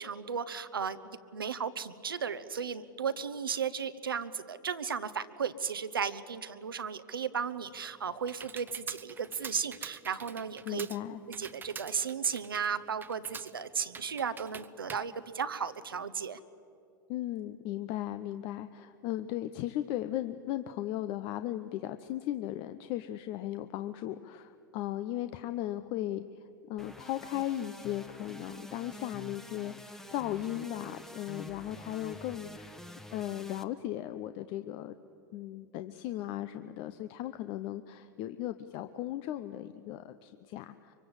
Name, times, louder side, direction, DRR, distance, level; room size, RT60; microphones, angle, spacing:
voice 1, 0.0-10.9 11.3-16.4, right 6 dB, 85° right, 12 dB, 1.0 m, -35 dB
Computer keyboard, 7.5-16.0, right 6 dB, 15° right, 0.8 m, -47 dB
voice 2, 10.6-11.2 17.1-32.8 33.1-34.9 35.3-40.9, left 13 dB, 45° left, 11 dB, 0.8 m, -37 dB
sound 1, 26.8-33.6, equal, 5° left, 1.2 m, -48 dB
24.5 x 24.0 x 8.1 m, 2.6 s
hypercardioid pair, 95°, 11 cm